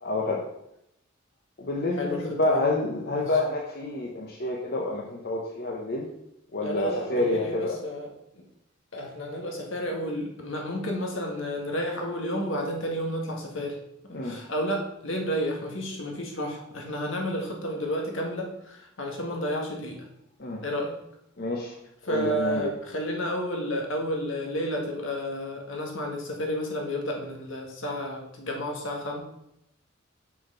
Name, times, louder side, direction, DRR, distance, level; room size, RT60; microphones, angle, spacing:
voice 1, 0.0-0.5 1.6-6.1 6.5-7.8 14.1-14.3 20.4-20.6 21.4-21.7 22.1-22.7, left 2 dB, 50° left, -2 dB, 1.1 m, -28 dB
voice 2, 2.0-2.6 3.1-3.3 6.6-8.1 8.9-13.8 14.0-20.1 20.6-20.9 22.0-29.2, equal, 70° left, 1 dB, 1.9 m, -31 dB
6.2 x 6.0 x 5.7 m, 0.80 s
head